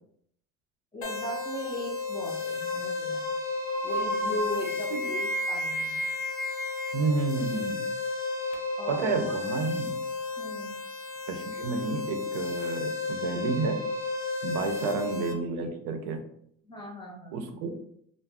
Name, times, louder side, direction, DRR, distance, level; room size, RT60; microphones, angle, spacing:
voice 1, 0.9-3.3 3.8-6.0 8.8-9.4 10.4-10.8 14.7-14.8 16.6-17.6, equal, 15° left, -1 dB, 0.5 m, -38 dB
sound 1, 1.0-15.3, left 4 dB, 55° left, 0.8 m, -33 dB
sound 2, 2.6-2.9 3.2-3.4 3.7-7.0, equal, 25° right, 0.8 m, -33 dB
voice 2, 6.9-7.8 8.9-10.0 11.3-13.8 14.4-16.2 17.3-17.8, right 4 dB, 65° right, 5 dB, 0.6 m, -30 dB
2.4 x 2.0 x 3.3 m, 0.68 s
cardioid pair, 125°, 32 cm